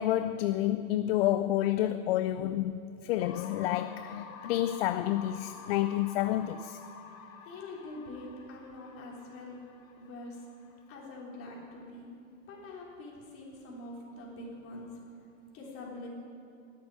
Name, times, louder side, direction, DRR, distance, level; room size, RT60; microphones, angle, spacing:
voice 1, 0.0-6.8, left 13 dB, 50° left, 0.4 m, -29 dB
sound 1, 3.2-11.1, left 6 dB, 80° left, 1.8 m, -50 dB
voice 2, 7.4-9.6 10.0-12.1 12.5-14.9 15.5-16.1, left 2 dB, 35° left, 3.5 m, -45 dB
10.5 x 8.3 x 10.0 m
hypercardioid pair, 140°, 40 cm